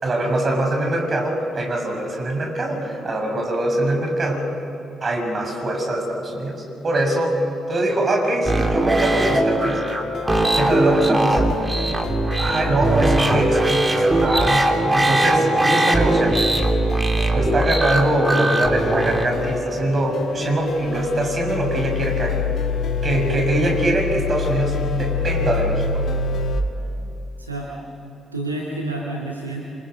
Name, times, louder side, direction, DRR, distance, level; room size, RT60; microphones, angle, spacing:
voice 1, 0.0-4.5 5.0-9.8 10.6-11.4 12.4-16.5 17.3-22.4 23.0-25.9, right 1 dB, 40° right, 2 dB, 6.9 m, -23 dB
sound 1, 8.5-19.3, right 1 dB, 20° right, 3.3 m, -20 dB
sound 2, 9.3-26.6, left 7 dB, 55° left, 1.7 m, -32 dB
sound 3, 10.3-11.9 20.4-26.6, left 4 dB, 75° left, 4.9 m, -27 dB
voice 2, 27.4-27.7 28.3-29.6, right 2 dB, 90° right, -3 dB, 2.1 m, -29 dB
28.0 x 27.0 x 6.2 m, 2.9 s
figure-of-eight pair, 40°, 0 cm